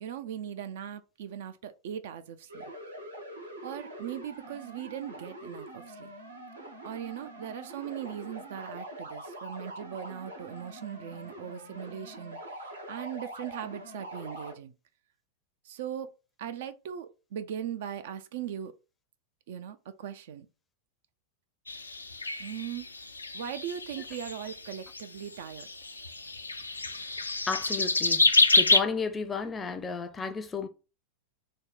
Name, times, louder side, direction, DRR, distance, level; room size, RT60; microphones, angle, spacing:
voice 1, 0.0-2.6 3.6-6.1 6.8-14.7 15.6-16.1 16.4-18.7 19.5-20.5 22.4-22.9 23.3-25.7, right 9 dB, 55° right, 0.3 m, -39 dB
sound 1, 2.5-14.5, right 1 dB, 80° right, 0.9 m, -44 dB
sound 2, 21.7-25.0 25.5-28.8, left 3 dB, 80° left, 0.3 m, -27 dB
voice 2, 27.5-28.2 28.5-30.7, left 5 dB, 20° left, 0.5 m, -33 dB
3.4 x 2.1 x 3.8 m
figure-of-eight pair, 90°, 0 cm